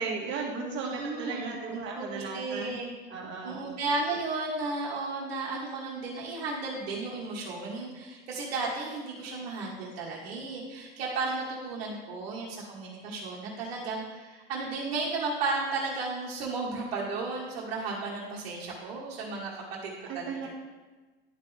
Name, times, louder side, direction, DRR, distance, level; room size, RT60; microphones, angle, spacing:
voice 1, 0.0-2.7 3.1-3.6 20.1-20.5, right 4 dB, 40° right, -2 dB, 1.9 m, -35 dB
voice 2, 0.8-2.9 3.4-20.5, right 3 dB, 80° right, -6 dB, 1.7 m, -34 dB
11.5 x 4.0 x 3.5 m, 1.3 s
supercardioid pair, 120°, 30 cm